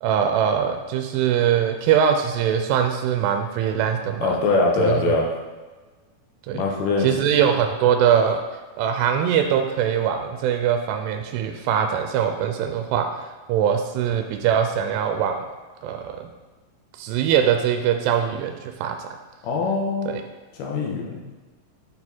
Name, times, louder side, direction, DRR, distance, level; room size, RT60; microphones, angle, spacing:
voice 1, 0.0-4.3 4.8-5.0 6.5-6.6 7.0-8.4 8.8-15.4 15.8-16.3 17.0-19.1 20.1-20.2, right 8 dB, 90° right, 5 dB, 2.6 m, -22 dB
voice 2, 4.2-5.3 6.5-7.1 19.4-20.1 20.6-21.2, left 3 dB, 80° left, -1 dB, 2.7 m, -22 dB
6.9 x 4.2 x 4.4 m, 1.3 s
omnidirectional pair, 4.7 m